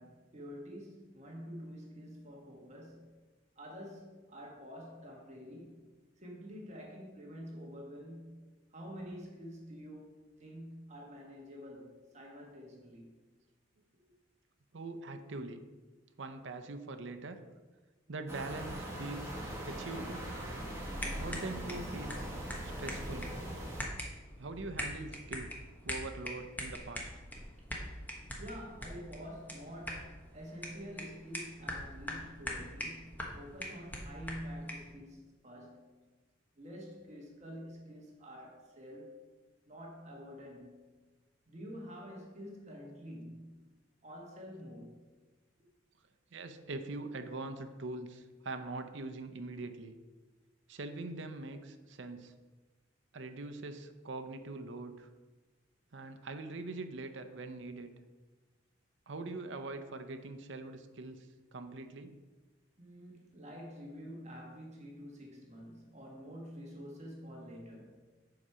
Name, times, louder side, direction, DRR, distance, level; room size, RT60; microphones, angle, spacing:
voice 1, 0.0-3.2 3.6-13.1 28.4-36.0 36.5-39.2 39.7-41.0 41.5-45.1 62.8-68.0, equal, 35° right, 1.4 m, -48 dB
voice 2, 14.7-15.6 16.2-17.4 18.1-19.4 19.6-20.3 21.2-22.3 22.6-23.3 24.4-25.5 25.8-27.1 46.3-49.9 50.7-52.3 53.1-55.1 55.9-57.9 59.1-62.1, right 2 dB, 65° right, 0.6 m, -43 dB
sound 1, 18.3-23.8, right 1 dB, 15° right, 1.6 m, -41 dB
sound 2, 21.0-34.9, equal, 10° left, 1.0 m, -43 dB
7.8 x 4.9 x 5.6 m
head